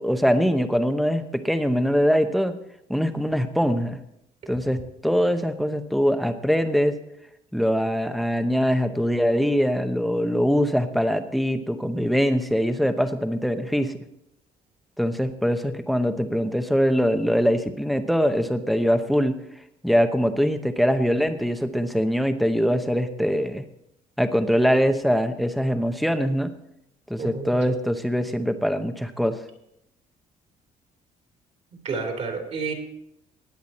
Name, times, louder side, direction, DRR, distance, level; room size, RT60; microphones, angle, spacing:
voice 1, 0.0-2.6 2.9-4.0 4.5-7.0 7.5-13.9 15.0-19.3 19.8-23.6 24.2-26.5 27.1-29.4, equal, ahead, 8 dB, 0.9 m, -23 dB
voice 2, 27.2-27.5 31.8-32.7, right 4 dB, 45° right, 2 dB, 3.0 m, -29 dB
19.5 x 8.2 x 4.2 m, 0.79 s
cardioid pair, 140°, 15 cm